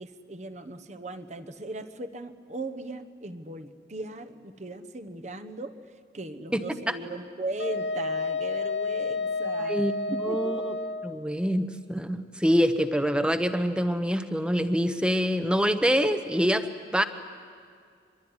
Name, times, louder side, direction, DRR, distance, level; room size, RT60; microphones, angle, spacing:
voice 1, 0.0-10.6, right 2 dB, 40° right, 8 dB, 1.1 m, -38 dB
Wind instrument woodwind instrument, 7.6-11.2, left 3 dB, 75° left, 1.2 m, -30 dB
voice 2, 9.6-9.9 10.2-10.7 11.0-17.0, equal, 5° right, 9 dB, 1.0 m, -25 dB
25.5 x 22.5 x 9.7 m, 2.1 s
head